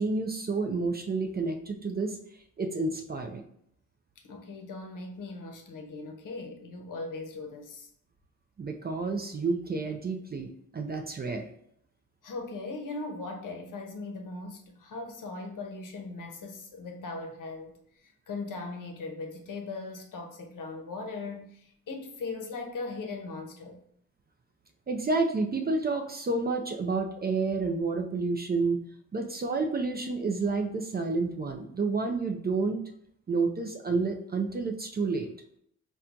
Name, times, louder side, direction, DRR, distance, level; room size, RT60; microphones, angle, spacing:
voice 1, 0.0-2.2 2.6-3.4 8.6-11.5 24.9-28.8 29.1-32.8 33.3-35.3, right 3 dB, 25° right, 0.4 m, -30 dB
voice 2, 4.2-7.9 12.2-23.8, left 3 dB, 55° left, 0.8 m, -39 dB
4.3 x 2.3 x 2.5 m
cardioid pair, 65°, 38 cm